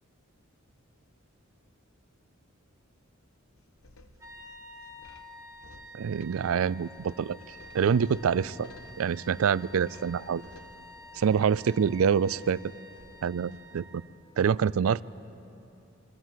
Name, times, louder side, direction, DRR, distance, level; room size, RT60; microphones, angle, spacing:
sound 1, 3.6-13.6, left 2 dB, 90° left, 1.2 m, -56 dB
sound 2, 4.2-14.2, left 1 dB, 15° right, 1.3 m, -50 dB
voice 1, 5.9-7.4 7.7-8.7 9.0-10.4 11.1-12.6 13.2-14.0 14.4-15.0, right 7 dB, 85° right, 20 dB, 0.4 m, -26 dB
23.5 x 17.0 x 7.5 m, 2.8 s
head